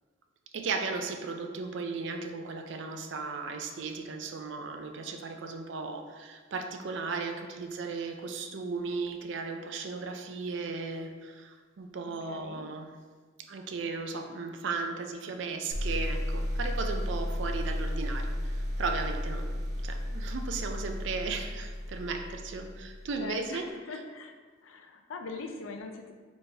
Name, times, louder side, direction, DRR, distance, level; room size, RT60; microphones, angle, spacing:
voice 1, 0.5-12.9 13.4-19.6 19.8-23.7, right 4 dB, 65° right, 5 dB, 0.4 m, -36 dB
voice 2, 12.0-12.7 23.2-24.3 24.6-26.1, left 3 dB, 80° left, 5 dB, 0.5 m, -41 dB
sound 1, 15.7-23.2, equal, 40° right, 1.0 m, -33 dB
4.1 x 3.4 x 3.3 m, 1.4 s
head